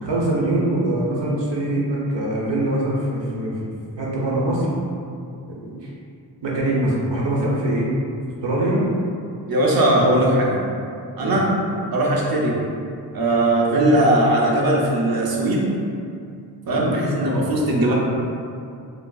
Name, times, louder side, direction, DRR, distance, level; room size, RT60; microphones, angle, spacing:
voice 1, 0.0-4.7 5.5-5.9 6.4-7.9 8.4-8.8 10.0-10.3 11.2-11.4 16.7-17.0, right 1 dB, 90° right, -5 dB, 0.9 m, -23 dB
voice 2, 9.5-10.6 11.2-11.5 11.9-12.6 13.1-15.7 16.7-17.9, right 1 dB, 60° right, -3 dB, 0.7 m, -19 dB
5.7 x 2.0 x 2.3 m, 2.5 s
wide cardioid pair, 140°, 42 cm